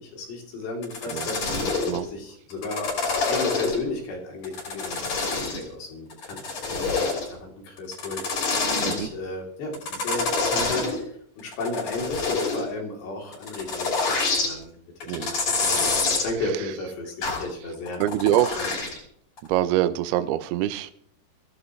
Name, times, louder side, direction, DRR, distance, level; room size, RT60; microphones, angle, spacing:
voice 1, 0.0-8.5 8.8-11.1 11.4-14.8 15.2-18.0 18.6-18.7, left 2 dB, 90° left, 0 dB, 5.4 m, -34 dB
sound 1, 0.8-2.0 2.5-3.9 4.4-5.7 6.1-7.3 7.8-9.0 9.7-11.0 11.4-12.6 13.3-14.5 15.0-16.3 17.2-17.5 17.9-19.0 19.4-19.5, left 4 dB, 45° left, 4.0 m, -26 dB
voice 2, 18.0-18.6 19.5-20.9, right 13 dB, 80° right, 10 dB, 2.6 m, -24 dB
22.0 x 14.5 x 3.2 m, 0.64 s
omnidirectional pair, 4.8 m